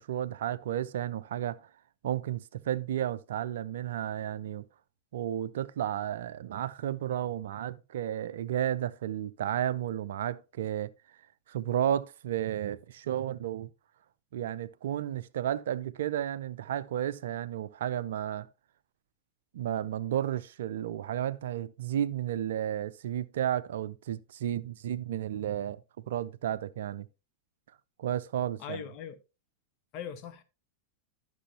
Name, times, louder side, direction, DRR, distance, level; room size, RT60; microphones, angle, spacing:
voice 1, 0.0-1.6 2.0-4.6 5.1-10.9 11.5-13.7 14.3-18.5 19.5-25.8 26.1-27.1 28.0-28.8, right 11 dB, 60° right, 0.4 m, -32 dB
voice 2, 28.6-29.2 29.9-30.4, left 8 dB, 40° left, 1.1 m, -40 dB
12.5 x 6.2 x 2.9 m
figure-of-eight pair, 90°, 0 cm